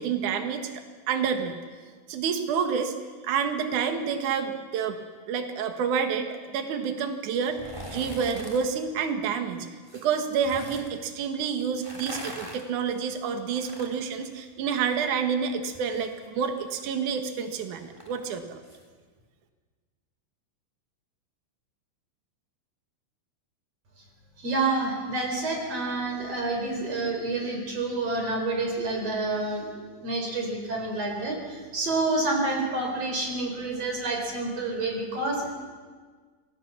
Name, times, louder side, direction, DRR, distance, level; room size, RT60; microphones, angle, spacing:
voice 1, 0.0-1.6 2.1-2.9 3.2-5.0 5.3-9.7 9.9-18.6, right 6 dB, 90° right, 7 dB, 1.7 m, -28 dB
sound 1, 7.5-8.7 9.8-10.9 11.7-15.1 15.4-18.8 19.2-19.3, equal, 10° right, 1.7 m, -43 dB
voice 2, 24.4-29.7 30.0-35.5, right 2 dB, 35° right, 2 dB, 4.8 m, -28 dB
27.5 x 19.0 x 7.2 m, 1.5 s
omnidirectional pair, 5.8 m